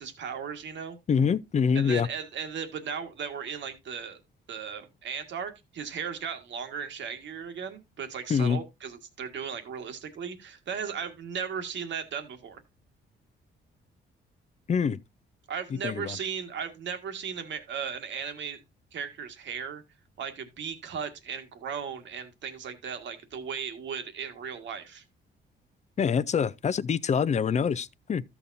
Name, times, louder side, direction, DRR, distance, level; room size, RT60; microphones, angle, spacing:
voice 1, 0.0-1.0 1.7-4.2 4.5-12.6 15.5-18.6 18.9-19.8 20.2-25.0, right 7 dB, 65° right, 1.8 m, -36 dB
voice 2, 1.1-2.1 8.3-8.6 14.7-15.0 15.7-16.2 26.0-28.2, left 6 dB, 35° left, 0.5 m, -25 dB
13.0 x 7.1 x 2.6 m
cardioid pair, 90°, 20 cm